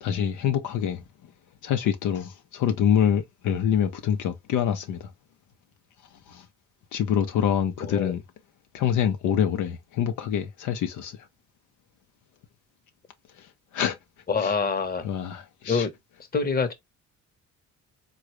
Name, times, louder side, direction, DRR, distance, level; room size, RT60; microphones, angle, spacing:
voice 1, 0.0-1.0 1.6-5.1 6.3-6.4 6.9-8.2 8.7-11.1 13.7-14.0 14.4-14.5 15.0-15.9, left 9 dB, 80° left, 0.7 m, -25 dB
voice 2, 7.8-8.1 14.3-15.1 15.7-15.9 16.3-16.7, left 5 dB, 30° left, 0.9 m, -25 dB
3.8 x 2.4 x 3.0 m
cardioid pair, 90°, 30 cm